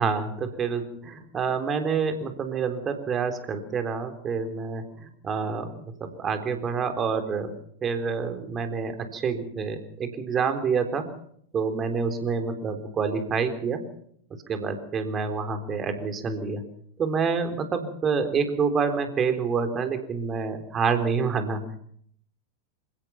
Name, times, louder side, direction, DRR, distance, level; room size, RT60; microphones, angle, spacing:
voice 1, 0.0-7.5 7.8-11.1 11.5-13.9 14.5-16.6 17.0-21.6, right 5 dB, 25° right, 7 dB, 3.8 m, -27 dB
27.5 x 17.0 x 5.9 m, 0.66 s
figure-of-eight pair, 90°, 0 cm